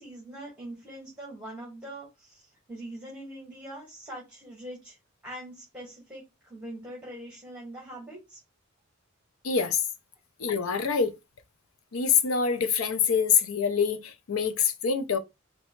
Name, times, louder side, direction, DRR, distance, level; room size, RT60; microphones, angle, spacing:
voice 1, 0.0-5.0 5.2-8.4, right 1 dB, 5° right, 1.5 m, -43 dB
voice 2, 9.4-9.8 10.4-11.1 11.9-15.2, left 6 dB, 85° left, 0.6 m, -25 dB
4.2 x 2.9 x 3.1 m
head